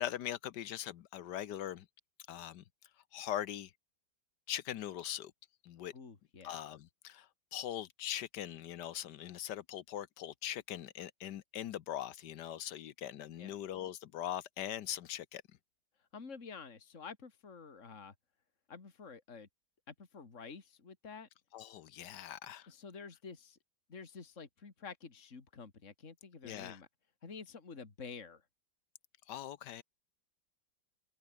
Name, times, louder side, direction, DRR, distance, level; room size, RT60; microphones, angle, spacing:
voice 1, 0.0-1.9 2.3-2.6 3.1-3.7 4.5-5.3 5.6-5.9 6.4-7.3 7.5-15.4 21.5-22.7 26.4-26.8 29.3-29.8, left 11 dB, 70° left, 1.4 m, -41 dB
voice 2, 5.9-6.6 13.4-13.6 16.1-18.1 18.7-19.5 19.9-21.3 22.7-23.6 23.9-26.9 27.2-28.4, left 5 dB, 40° left, 2.8 m, -49 dB
omnidirectional pair, 1.9 m